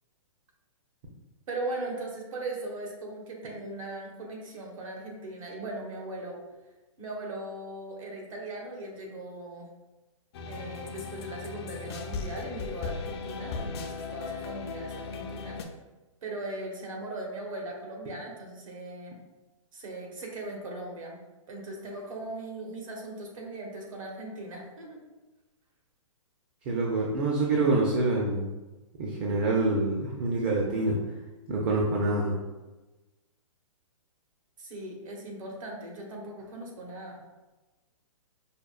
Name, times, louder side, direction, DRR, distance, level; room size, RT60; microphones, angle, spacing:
voice 1, 1.5-6.4 7.0-9.7 10.5-15.6 16.2-19.2 19.7-21.2 21.5-25.0 34.6-37.2, right 2 dB, 70° right, 0 dB, 1.1 m, -39 dB
sound 1, 10.3-15.6, left 4 dB, 50° left, 0.4 m, -37 dB
voice 2, 26.7-28.5 29.0-31.0 31.5-32.4, right 2 dB, 30° right, -2 dB, 0.5 m, -26 dB
5.0 x 2.4 x 2.4 m, 1.1 s
hypercardioid pair, 150°, 18 cm